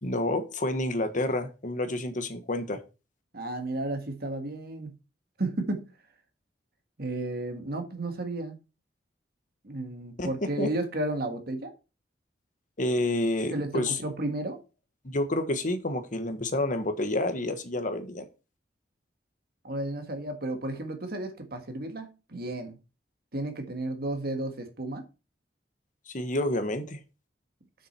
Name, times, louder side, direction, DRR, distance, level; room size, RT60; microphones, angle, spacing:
voice 1, 0.0-2.8 10.2-10.3 10.6-10.7 12.8-14.0 15.0-18.3 26.1-27.0, left 1 dB, 45° left, 1.5 m, -29 dB
voice 2, 3.3-5.0 5.4-5.9 7.0-8.6 9.6-11.7 13.5-14.6 19.6-22.8 23.3-25.1, right 2 dB, 60° right, 1.8 m, -33 dB
7.4 x 6.6 x 4.4 m
head